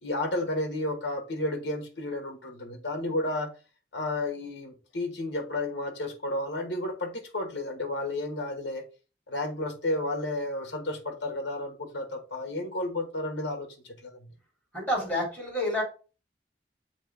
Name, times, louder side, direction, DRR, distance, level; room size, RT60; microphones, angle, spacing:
voice 1, 0.0-3.5 3.9-8.8 9.3-14.3, left 1 dB, 80° left, 1.3 m, -32 dB
voice 2, 14.7-15.8, left 1 dB, 10° left, 3.0 m, -28 dB
7.4 x 3.0 x 4.6 m
head